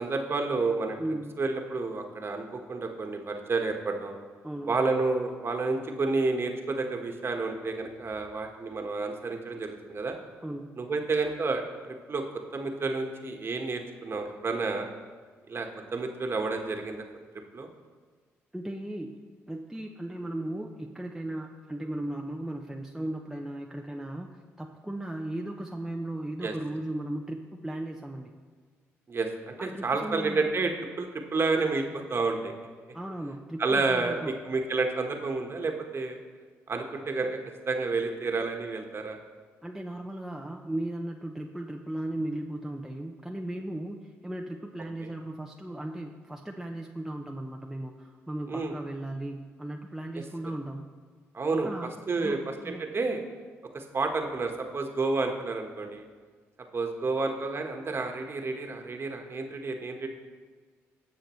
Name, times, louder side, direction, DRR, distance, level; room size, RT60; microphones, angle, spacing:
voice 1, 0.0-1.0 1.4-4.1 4.7-10.1 10.8-11.6 12.1-12.2 12.5-14.9 15.5-17.0 17.5-17.7 26.4-26.5 29.1-30.7 31.0-32.5 33.6-36.2 36.7-37.4 37.7-39.2 45.0-45.1 48.5-48.7 50.2-50.3 51.3-51.7 52.1-52.4 52.7-53.2 53.7-56.0 56.7-60.1, right 3 dB, 40° right, 4 dB, 1.4 m, -30 dB
voice 2, 1.0-1.4 4.4-4.8 10.4-10.7 18.5-19.2 19.5-28.3 29.6-30.4 32.9-34.3 39.6-50.8 51.6-52.8, right 1 dB, 5° right, 1 dB, 0.7 m, -36 dB
17.0 x 6.3 x 3.2 m, 1.5 s
supercardioid pair, 60°, 6 cm